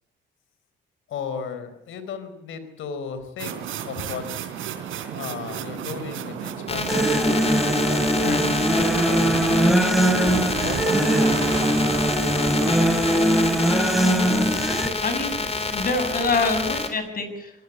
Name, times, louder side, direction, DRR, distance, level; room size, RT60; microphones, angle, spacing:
voice 1, 1.1-4.2 5.1-8.5 9.1-13.6, left 6 dB, 80° left, 11 dB, 4.2 m, -36 dB
sound 1, 3.4-14.9, right 8 dB, 85° right, 3.6 m, -34 dB
sound 2, 6.7-16.9, left 3 dB, 30° left, 4.3 m, -28 dB
sound 3, 6.9-14.9, right 1 dB, ahead, 2.9 m, -21 dB
voice 2, 15.0-17.5, left 3 dB, 45° left, 9 dB, 7.2 m, -26 dB
25.0 x 19.5 x 8.4 m, 0.85 s
cardioid pair, 90°, 20 cm